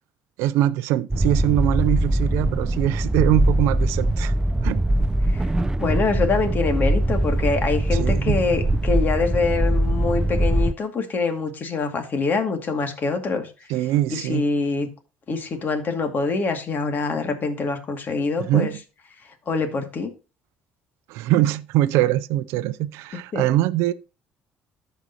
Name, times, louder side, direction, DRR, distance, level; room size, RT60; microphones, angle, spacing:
voice 1, 0.4-4.3 4.6-4.8 7.9-8.4 13.7-14.5 18.4-18.8 21.1-23.9, right 14 dB, 80° right, 0.5 m, -22 dB
sound 1, 1.1-10.7, right 1 dB, 15° right, 0.5 m, -22 dB
voice 2, 5.8-13.5 14.1-14.9 15.3-18.7 19.5-20.1 23.3-23.4, left 4 dB, 45° left, 2.2 m, -25 dB
14.0 x 5.3 x 2.9 m
supercardioid pair, 85°, 4 cm